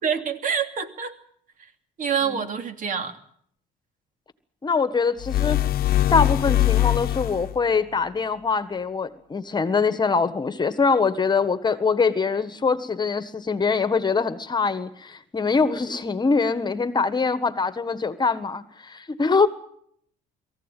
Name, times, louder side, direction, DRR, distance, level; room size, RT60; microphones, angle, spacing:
voice 1, 0.0-1.1 2.0-3.2, right 7 dB, 50° right, 7 dB, 2.8 m, -26 dB
voice 2, 4.6-5.6 6.1-19.5, left 4 dB, 25° left, 12 dB, 1.6 m, -23 dB
sound 1, 5.2-7.6, left 13 dB, 65° left, 0.9 m, -22 dB
22.5 x 15.5 x 9.3 m, 0.65 s
cardioid pair, 110°, 17 cm